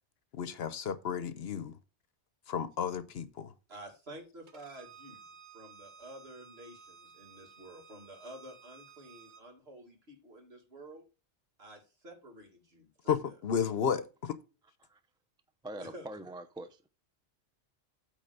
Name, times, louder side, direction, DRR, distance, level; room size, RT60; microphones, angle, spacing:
voice 1, 0.4-1.7 2.5-3.5 13.1-14.4, left 7 dB, 65° left, 1.0 m, -33 dB
voice 2, 3.7-5.2 5.5-11.0 11.6-13.3 15.8-16.1, right 1 dB, 65° right, 2.5 m, -50 dB
Bowed string instrument, 4.5-9.4, right 5 dB, 45° right, 1.1 m, -55 dB
voice 3, 15.6-16.8, right 1 dB, 5° right, 0.5 m, -43 dB
8.7 x 3.6 x 6.6 m
omnidirectional pair, 1.1 m